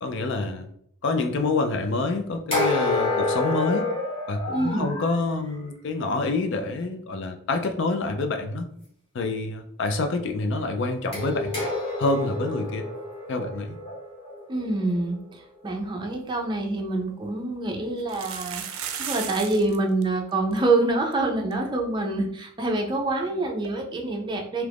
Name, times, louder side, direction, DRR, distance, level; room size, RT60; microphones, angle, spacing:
voice 1, 0.0-0.7 1.0-3.9 4.3-8.7 9.1-11.5 12.0-12.9 13.3-13.8, left 3 dB, 60° left, 6 dB, 0.4 m, -27 dB
sound 1, 2.5-5.2 11.1-15.1, left 2 dB, 30° left, 0.9 m, -28 dB
voice 2, 4.5-4.9 14.5-18.6 18.9-24.7, right 2 dB, 20° right, 1 dB, 0.5 m, -26 dB
sound 2, 16.4-16.5 16.8-16.9 18.0-19.8 20.0-20.1 20.3-20.6 21.1-21.2 21.5-21.6 23.6-23.7, right 8 dB, 80° right, 0.4 m, -34 dB
2.9 x 2.4 x 3.4 m, 0.68 s
head